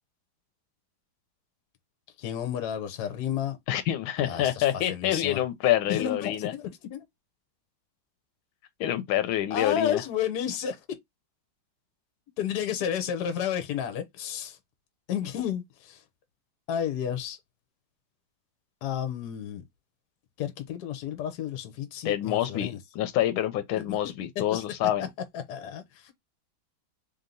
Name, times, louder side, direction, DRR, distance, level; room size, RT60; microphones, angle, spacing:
voice 1, 2.2-3.6 4.2-5.4 5.9-7.0 9.5-10.8 12.4-14.6 15.1-16.0 16.7-17.4 18.8-19.6 20.4-22.8 23.8-24.0 24.5-24.6 25.0-25.1 25.3-26.1, left 9 dB, 60° left, 1.2 m, -32 dB
voice 2, 3.7-6.5 8.8-10.0 22.0-25.1, left 12 dB, 85° left, 1.5 m, -27 dB
3.4 x 2.8 x 3.8 m
omnidirectional pair, 2.2 m